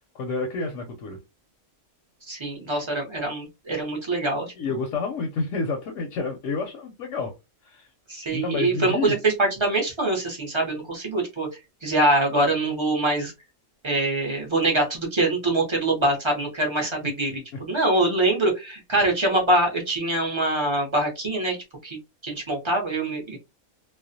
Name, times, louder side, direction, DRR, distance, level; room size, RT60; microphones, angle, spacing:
voice 1, 0.1-1.2 4.6-7.3 7.6-7.9 8.3-9.2, left 4 dB, 70° left, 0.8 m, -29 dB
voice 2, 2.2-4.5 8.1-11.5 11.8-13.3 13.8-21.6 21.8-22.0 22.2-23.4, right 2 dB, 35° right, 0.4 m, -24 dB
2.4 x 2.0 x 2.5 m
omnidirectional pair, 1.5 m